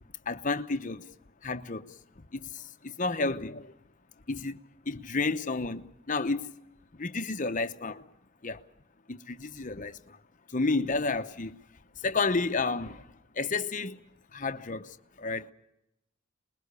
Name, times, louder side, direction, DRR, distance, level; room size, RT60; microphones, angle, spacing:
voice 1, 0.3-1.1 1.4-1.9 2.3-3.7 4.3-4.6 4.9-6.5 7.0-8.0 8.4-8.6 9.1-10.2 10.5-11.6 12.0-14.0 14.3-15.5, left 3 dB, 40° left, 0.9 m, -31 dB
26.0 x 21.5 x 6.8 m
head